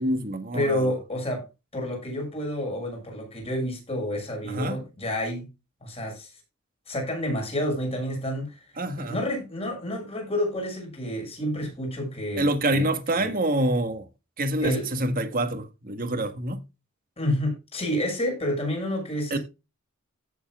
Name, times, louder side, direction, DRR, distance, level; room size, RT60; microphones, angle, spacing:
voice 1, 0.0-0.9 4.4-4.8 8.8-9.2 12.4-14.0 14.4-16.6 19.3-19.4, right 1 dB, 45° right, 1.7 m, -26 dB
voice 2, 0.5-1.4 1.7-5.4 5.8-6.3 6.9-8.6 9.0-12.9 13.2-13.3 14.6-14.9 17.2-19.4, left 1 dB, 30° left, 5.9 m, -29 dB
16.0 x 7.1 x 2.4 m
head